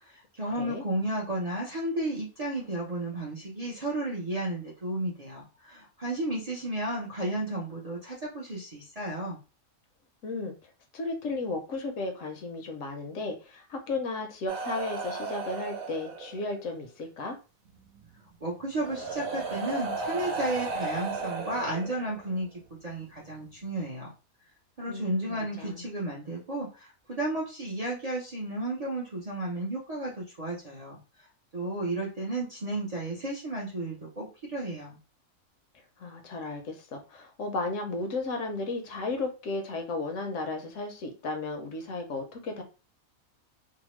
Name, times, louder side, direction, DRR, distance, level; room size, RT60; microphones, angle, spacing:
voice 1, 0.0-9.4 18.4-24.1 24.8-31.0 31.5-35.0, right 1 dB, 40° right, -5 dB, 0.6 m, -33 dB
voice 2, 10.2-17.4 24.9-25.9 36.0-42.6, left 3 dB, 70° left, 4 dB, 0.9 m, -34 dB
sound 1, 14.5-16.6 17.9-18.1 18.8-22.4 23.5-23.6, right 4 dB, 85° right, 1.1 m, -35 dB
2.8 x 2.0 x 3.0 m, 0.32 s
omnidirectional pair, 1.4 m